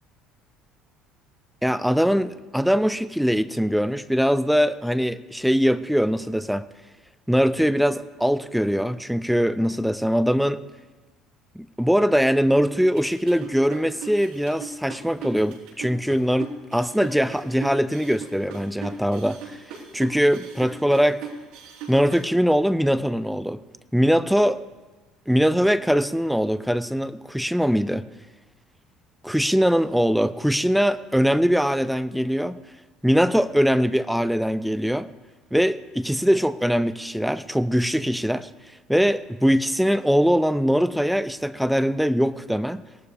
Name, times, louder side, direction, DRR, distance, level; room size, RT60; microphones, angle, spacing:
voice 1, 1.6-6.7 7.3-10.6 11.6-19.4 19.9-21.2 21.9-23.6 23.9-24.6 25.3-28.0 29.2-32.6 33.0-35.1 35.5-38.5 38.9-42.8, equal, ahead, 14 dB, 0.4 m, -22 dB
sound 1, 12.8-22.3, right 5 dB, 85° right, 3.8 m, -38 dB
18.0 x 12.0 x 3.4 m, 1.2 s
cardioid pair, 145°, 0 cm